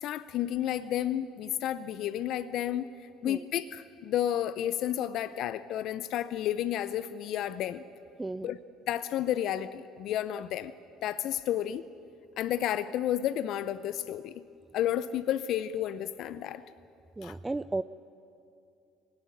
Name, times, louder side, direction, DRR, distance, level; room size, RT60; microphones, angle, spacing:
voice 1, 0.0-2.9 3.2-7.8 8.4-8.6 8.9-10.7 11.0-11.8 12.4-14.4 14.7-16.7 17.2-17.3, left 11 dB, 65° left, 13 dB, 0.6 m, -31 dB
voice 2, 8.2-8.5 17.2-17.8, right 2 dB, 15° right, 13 dB, 0.6 m, -34 dB
23.5 x 18.0 x 9.7 m, 2.5 s
hypercardioid pair, 60°, 0 cm